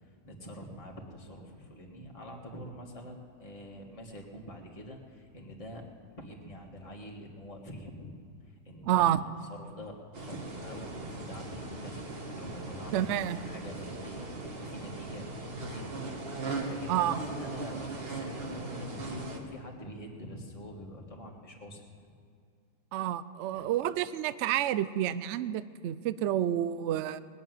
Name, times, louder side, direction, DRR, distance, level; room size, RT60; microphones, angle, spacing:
voice 1, 0.0-5.8 6.1-8.2 8.4-15.2 15.7-15.9 16.4-22.0 23.5-23.7, equal, 20° left, -1 dB, 1.8 m, -45 dB
voice 2, 8.9-9.2 12.9-13.4 16.9-17.2 22.9-27.2, right 11 dB, 75° right, 15 dB, 0.6 m, -29 dB
sound 1, 10.1-19.4, right 2 dB, 35° right, 1.5 m, -39 dB
20.5 x 7.0 x 9.4 m, 2.3 s
omnidirectional pair, 1.8 m